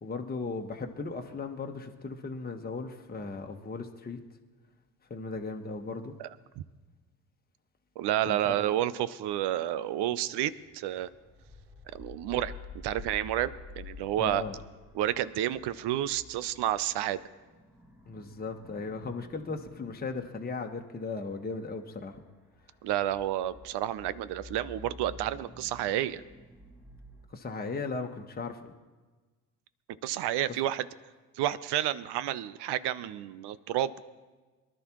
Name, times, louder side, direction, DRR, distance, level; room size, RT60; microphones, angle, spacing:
voice 1, 0.0-4.2 5.1-6.1 8.3-8.6 14.2-14.5 18.1-22.2 27.3-28.7, left 4 dB, 20° left, 3 dB, 1.4 m, -37 dB
voice 2, 8.0-11.1 11.9-12.5 12.8-14.4 14.9-17.2 22.8-26.2 30.0-30.9 31.3-33.9, right 12 dB, 55° right, 16 dB, 0.8 m, -30 dB
sound 1, 9.5-27.3, left 3 dB, 5° right, 1.7 m, -51 dB
23.5 x 11.5 x 3.1 m, 1.3 s
hypercardioid pair, 60°, 48 cm